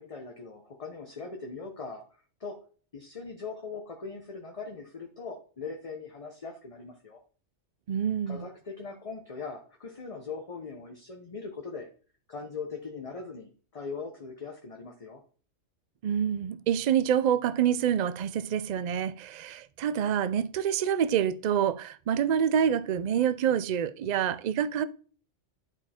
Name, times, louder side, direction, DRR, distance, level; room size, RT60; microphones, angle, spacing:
voice 1, 0.0-2.6 2.9-7.2 8.3-11.9 12.3-15.2, left 4 dB, 30° left, 0.9 m, -40 dB
voice 2, 7.9-8.5 16.0-24.8, right 9 dB, 50° right, 0.5 m, -27 dB
10.5 x 4.5 x 4.3 m
omnidirectional pair, 1.2 m